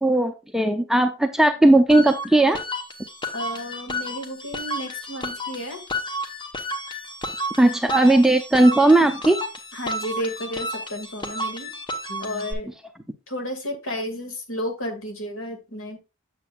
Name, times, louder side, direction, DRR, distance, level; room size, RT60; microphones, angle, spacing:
voice 1, 0.0-2.6 7.6-9.4, right 2 dB, ahead, 6 dB, 0.5 m, -17 dB
sound 1, 1.9-12.5, equal, 20° left, 1.1 m, -32 dB
voice 2, 3.3-5.8 9.7-11.7 12.1-12.7 13.3-16.0, equal, 65° left, 5 dB, 2.2 m, -32 dB
8.1 x 7.3 x 2.4 m, 0.28 s
head